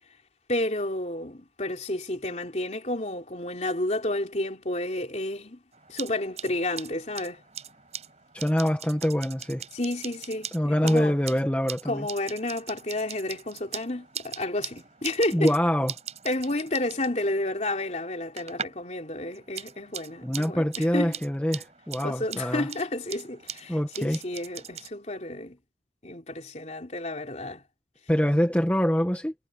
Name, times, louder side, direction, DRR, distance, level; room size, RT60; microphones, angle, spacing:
voice 1, 0.5-5.6 5.9-7.4 9.7-11.2 11.8-15.5 16.2-21.2 22.0-25.6 26.0-27.6, left 1 dB, 40° left, 3.4 m, -31 dB
sound 1, 5.7-18.9 19.2-24.9, right 8 dB, 35° right, 5.1 m, -41 dB
voice 2, 8.3-9.6 10.5-12.1 15.3-15.9 20.2-22.7 23.7-24.2 28.1-29.3, equal, 10° left, 1.3 m, -25 dB
head